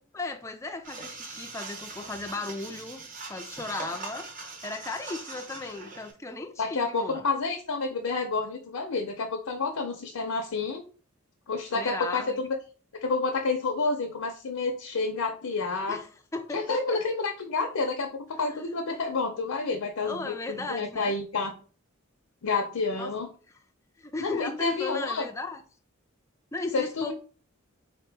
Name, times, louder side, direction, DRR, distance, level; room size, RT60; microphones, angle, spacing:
voice 1, 0.1-3.0 3.3-4.3 4.6-7.2 11.7-12.4 15.9-16.1 16.3-17.0 20.0-21.1 23.0-23.1 24.0-25.6 26.5-27.1, left 3 dB, 15° left, 0.3 m, -35 dB
sound 1, 0.8-6.1, right 3 dB, 40° right, 0.8 m, -41 dB
voice 2, 6.6-10.8 11.5-12.6 13.0-16.0 16.5-21.5 22.4-23.3 24.2-25.2 26.7-27.1, left 3 dB, 85° left, 0.6 m, -29 dB
3.8 x 2.9 x 3.3 m
head